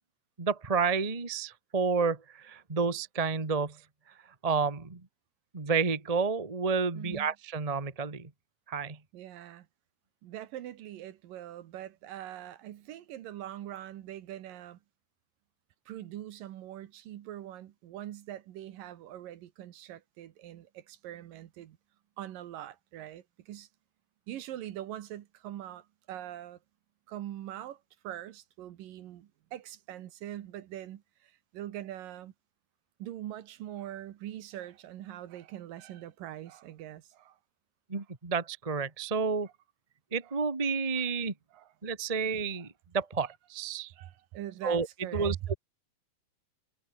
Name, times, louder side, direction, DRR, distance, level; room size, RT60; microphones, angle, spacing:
voice 1, 0.4-3.8 4.4-5.0 5.5-8.3 8.7-9.0 37.9-39.5 40.1-41.3 41.8-43.9 44.6-44.9 45.1-45.5, right 5 dB, 30° right, 0.6 m, -30 dB
voice 2, 7.0-7.3 9.1-9.7 10.2-14.8 15.9-21.8 22.2-23.7 24.3-26.6 27.1-32.3 33.0-37.4 40.2-40.3 41.0-41.1 41.5-41.7 43.9-45.6, right 12 dB, 70° right, 2.9 m, -42 dB
omnidirectional pair, 4.2 m